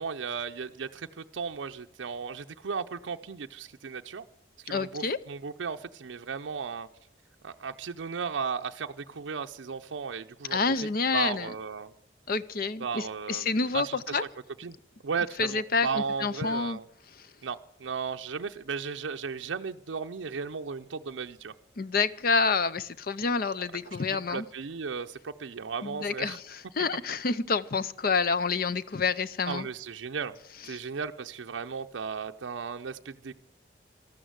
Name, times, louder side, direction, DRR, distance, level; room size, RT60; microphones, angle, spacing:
voice 1, 0.0-4.3 4.6-6.9 7.4-10.6 11.1-11.9 12.8-14.2 14.6-14.8 15.0-16.9 17.4-21.5 23.9-24.0 24.3-26.4 29.4-30.3 30.6-33.4, right 5 dB, 90° right, 6 dB, 0.5 m, -35 dB
voice 2, 4.7-5.2 10.5-11.5 12.3-14.2 15.4-16.8 21.8-24.5 25.8-29.7, left 4 dB, 50° left, 15 dB, 0.6 m, -28 dB
13.0 x 12.5 x 8.0 m, 0.72 s
head